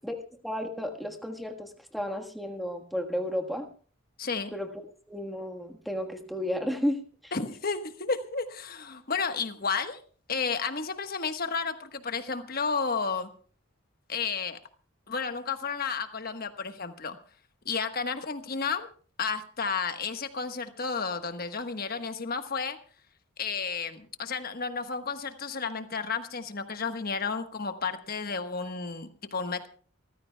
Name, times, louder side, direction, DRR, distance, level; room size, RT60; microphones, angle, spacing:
voice 1, 0.4-3.7 4.5-4.7 5.1-7.3, equal, ahead, 3 dB, 1.4 m, -33 dB
voice 2, 4.2-4.6 7.3-10.0 10.3-13.3 14.1-14.6 15.1-17.2 17.6-18.9 19.2-22.8 23.4-29.7, left 5 dB, 45° left, 8 dB, 1.3 m, -32 dB
28.0 x 14.5 x 2.3 m, 0.41 s
head